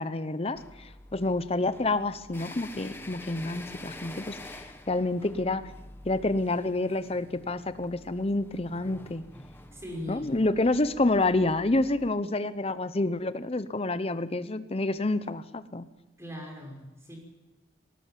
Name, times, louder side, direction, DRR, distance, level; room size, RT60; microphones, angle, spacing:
voice 1, 0.0-4.4 4.9-5.7 6.0-9.2 10.1-15.9, left 2 dB, 30° left, 14 dB, 0.8 m, -28 dB
sound 1, 0.5-12.1, left 1 dB, 10° left, 1.3 m, -47 dB
voice 2, 9.7-10.3 16.2-17.2, left 1 dB, 15° right, 1 dB, 5.4 m, -39 dB
19.5 x 18.5 x 7.5 m, 1.0 s
head